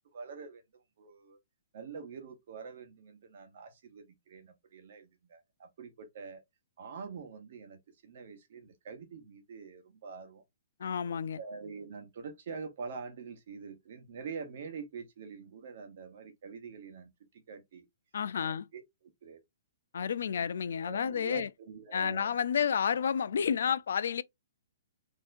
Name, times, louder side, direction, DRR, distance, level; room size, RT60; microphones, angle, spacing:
voice 1, 0.1-0.6 1.0-1.4 1.7-6.4 6.8-10.4 11.4-17.8 18.4-18.8 19.2-19.4 20.9-22.3, right 5 dB, 45° right, 0.9 m, -45 dB
voice 2, 10.8-11.4 18.1-18.6 19.9-21.5 21.9-24.2, left 7 dB, 65° left, 0.3 m, -30 dB
4.3 x 2.9 x 2.5 m
hypercardioid pair, 170°, 0 cm